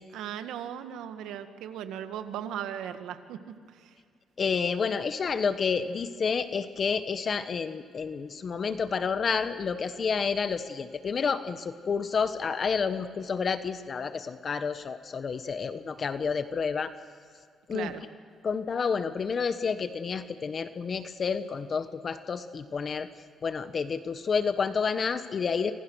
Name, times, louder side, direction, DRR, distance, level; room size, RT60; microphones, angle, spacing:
voice 1, 0.1-3.4 3.7-4.0 17.7-18.0, right 9 dB, 85° right, 8 dB, 1.7 m, -37 dB
voice 2, 4.4-16.9 17.7-17.9 18.4-23.1 23.4-25.7, left 5 dB, 45° left, 11 dB, 1.2 m, -29 dB
27.5 x 26.5 x 6.4 m, 2.1 s
cardioid pair, 90°, 0 cm